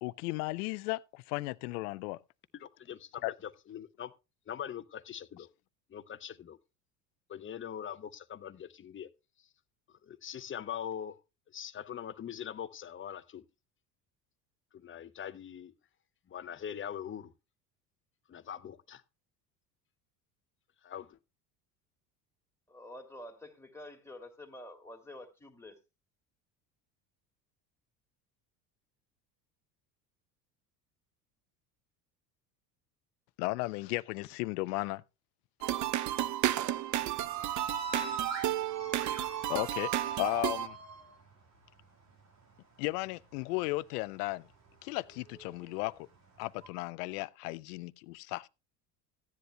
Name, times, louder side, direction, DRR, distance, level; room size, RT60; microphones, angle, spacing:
voice 1, 0.0-2.2 3.2-3.3 33.4-35.0 39.5-40.8 42.8-44.5 44.8-46.1 46.4-48.5, left 22 dB, 65° left, 0.6 m, -35 dB
voice 2, 2.5-4.1 4.5-5.5 5.9-6.6 7.3-9.1 9.9-11.2 11.5-13.4 14.7-15.7 16.3-17.3 18.3-19.0 20.8-21.2, left 9 dB, 25° left, 0.7 m, -42 dB
voice 3, 22.7-25.8, left 1 dB, 5° left, 2.5 m, -48 dB
sound 1, 35.6-40.7, right 13 dB, 40° right, 0.6 m, -32 dB
sound 2, 37.0-41.8 42.1-42.5 42.8-43.8 44.3-46.7, right 5 dB, 80° right, 2.0 m, -42 dB
15.5 x 10.0 x 2.2 m
hypercardioid pair, 70°, 49 cm